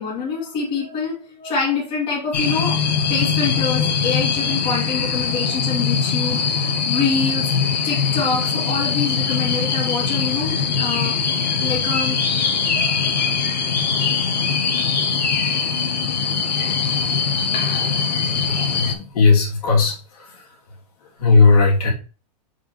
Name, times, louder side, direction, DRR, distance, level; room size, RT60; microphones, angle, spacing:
voice 1, 0.0-2.8 3.1-7.5 7.8-11.2 11.6-12.2 12.7-13.4, left 5 dB, 25° left, 2.4 m, -26 dB
sound 1, 2.3-18.9, left 6 dB, 90° left, 1.7 m, -21 dB
voice 2, 18.5-19.9 21.2-21.9, left 4 dB, 65° left, 3.2 m, -16 dB
6.0 x 5.1 x 4.4 m
supercardioid pair, 170°, 21 cm